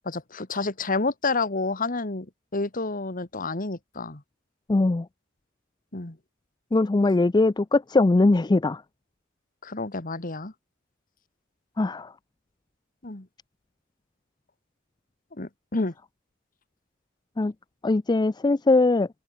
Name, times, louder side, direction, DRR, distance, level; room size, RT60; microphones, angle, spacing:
voice 1, 0.1-2.3 2.5-4.2 5.9-6.2 9.6-10.5 13.0-13.3 15.4-15.9, left 3 dB, 45° left, 1.9 m, -29 dB
voice 2, 4.7-5.1 6.7-8.8 11.8-12.1 15.8-15.9 17.4-17.5 17.8-19.1, left 2 dB, 20° left, 0.4 m, -21 dB
open air
head